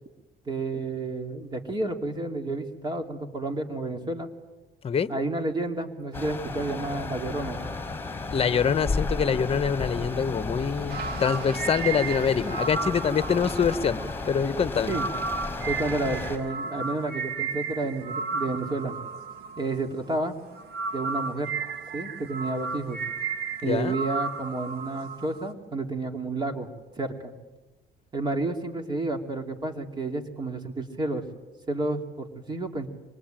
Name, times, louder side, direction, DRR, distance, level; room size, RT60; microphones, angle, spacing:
voice 1, 0.5-4.3 5.1-7.6 14.8-15.1 15.7-18.9 19.6-20.4 20.9-21.5 21.9-23.0 23.6-26.7 27.0-27.3 28.1-31.2 31.7-32.9, right 2 dB, 25° right, 4 dB, 2.7 m, -30 dB
sound 1, 6.1-16.4, left 3 dB, 10° left, 4.9 m, -33 dB
voice 2, 8.3-14.9 23.6-24.0, left 7 dB, 35° left, 13 dB, 1.2 m, -25 dB
sound 2, 10.9-20.2 20.5-25.5, right 4 dB, 70° right, 2.0 m, -34 dB
26.0 x 23.0 x 9.1 m, 1.1 s
cardioid pair, 110°, 17 cm